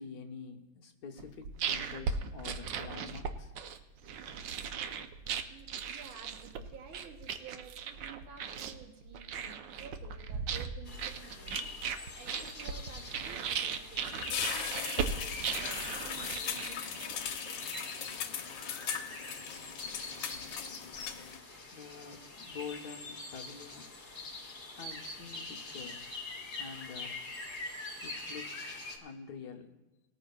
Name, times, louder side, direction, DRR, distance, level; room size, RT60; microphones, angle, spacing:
voice 1, 0.0-3.5 21.7-23.9 24.8-26.2 26.6-27.2 28.0-29.7, left 6 dB, 60° left, 3 dB, 1.4 m, -47 dB
sound 1, 1.2-17.3, right 6 dB, 70° right, 1.3 m, -38 dB
voice 2, 5.5-11.7 12.1-17.6, right 6 dB, 85° right, 3 dB, 1.9 m, -52 dB
sound 2, 10.8-29.0, left 2 dB, 35° left, 1.8 m, -44 dB
sound 3, 14.0-21.4, left 8 dB, 75° left, 1.6 m, -39 dB
20.0 x 13.5 x 2.3 m, 1.1 s
omnidirectional pair, 2.2 m